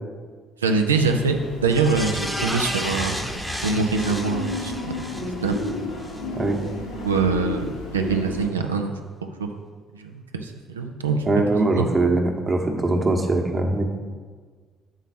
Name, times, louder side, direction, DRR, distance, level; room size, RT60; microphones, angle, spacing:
voice 1, 0.6-3.2 3.6-5.1 5.4-5.6 6.9-9.0 9.4-9.5 9.9-11.2 11.7-11.9, right 4 dB, 80° right, 5 dB, 0.5 m, -24 dB
sound 1, 0.9-8.5, left 2 dB, 75° left, 1.1 m, -32 dB
sound 2, 1.7-6.2 6.6-6.7, equal, ahead, 0.9 m, -32 dB
voice 2, 11.3-13.9, right 2 dB, 35° right, 3 dB, 1.1 m, -22 dB
7.2 x 4.0 x 5.9 m, 1.5 s
figure-of-eight pair, 50°, 0 cm